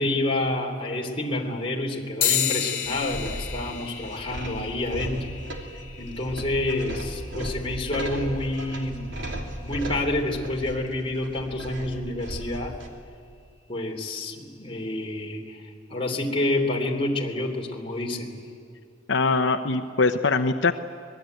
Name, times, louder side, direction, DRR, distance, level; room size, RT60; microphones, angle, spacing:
voice 1, 0.0-5.3 6.0-9.0 9.6-12.7 13.7-18.4, left 1 dB, 30° left, 1 dB, 3.2 m, -28 dB
sound 1, 2.2-12.0, left 9 dB, 55° left, 3.0 m, -34 dB
sound 2, 2.9-12.9, right 1 dB, 75° right, 3.1 m, -36 dB
voice 2, 19.1-20.7, left 4 dB, 80° left, 7 dB, 0.8 m, -22 dB
25.5 x 21.0 x 9.2 m, 2.4 s
head